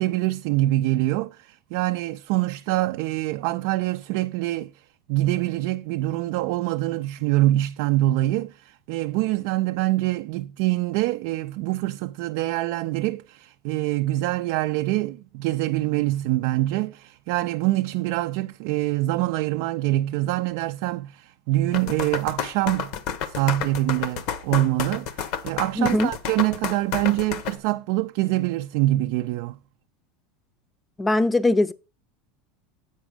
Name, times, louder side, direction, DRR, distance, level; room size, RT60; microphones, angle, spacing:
voice 1, 0.0-4.7 5.1-22.9 23.3-29.6, right 16 dB, 65° right, 0.4 m, -25 dB
sound 1, 21.7-27.6, left 8 dB, 60° left, 0.9 m, -30 dB
voice 2, 25.8-26.1 31.0-31.7, left 2 dB, 15° left, 0.6 m, -21 dB
8.0 x 5.0 x 5.0 m
supercardioid pair, 115°, 0 cm